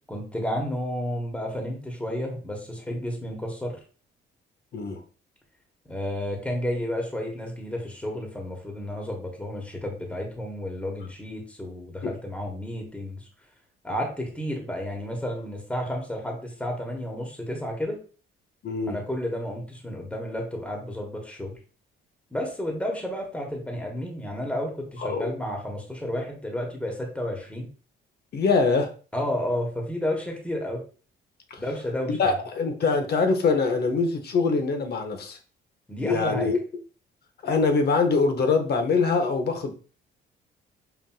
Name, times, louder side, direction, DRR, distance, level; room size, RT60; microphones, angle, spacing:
voice 1, 0.1-3.8 5.9-13.3 13.8-18.0 18.9-21.6 22.3-27.7 29.1-30.8 31.6-32.4 35.9-36.5, left 1 dB, 5° left, 1 dB, 1.1 m, -31 dB
voice 2, 18.6-19.0 25.0-25.3 28.3-28.9 31.5-31.6 32.0-35.4 36.0-36.6 37.4-39.7, left 4 dB, 55° left, 6 dB, 0.8 m, -23 dB
5.8 x 2.5 x 2.3 m, 0.38 s
cardioid pair, 90°, 20 cm